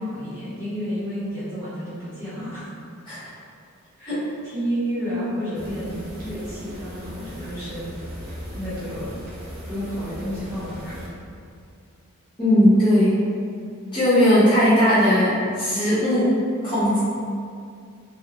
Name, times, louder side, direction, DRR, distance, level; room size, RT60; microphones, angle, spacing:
voice 1, 0.0-2.7 4.0-4.2 4.5-7.8 8.5-9.1 9.7-11.1, equal, 10° right, -13 dB, 0.9 m, -30 dB
sound 1, 5.5-11.1, equal, 40° right, 0.8 m, -38 dB
voice 2, 12.4-13.2 13.9-17.0, equal, 20° left, -12 dB, 0.7 m, -18 dB
2.8 x 2.3 x 2.9 m, 2.3 s
head